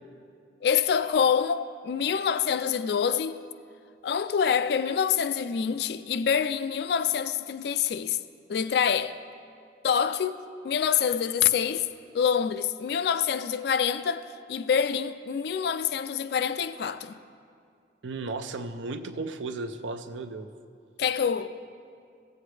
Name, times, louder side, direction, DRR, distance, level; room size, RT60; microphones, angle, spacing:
voice 1, 0.6-3.4 4.0-8.2 8.5-9.2 9.8-11.9 12.1-17.2 21.0-21.5, left 7 dB, 55° left, 0.3 m, -26 dB
voice 2, 18.0-20.5, right 3 dB, 80° right, 0.5 m, -35 dB
15.5 x 7.9 x 3.3 m
head